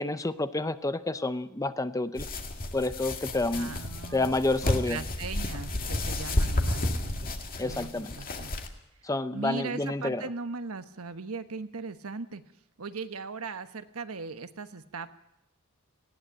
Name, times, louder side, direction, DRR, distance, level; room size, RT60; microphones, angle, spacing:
voice 1, 0.0-2.3 2.7-3.8 4.1-5.0 7.6-8.1 9.0-10.2, left 2 dB, 15° left, 12 dB, 0.7 m, -29 dB
sound 1, 2.2-8.7, left 1 dB, 40° left, 2.1 m, -31 dB
voice 2, 3.5-4.4 4.6-7.3 7.6-8.5 9.3-12.4 12.8-15.1, right 4 dB, 70° right, 10 dB, 1.2 m, -38 dB
19.0 x 16.5 x 9.0 m, 0.83 s
head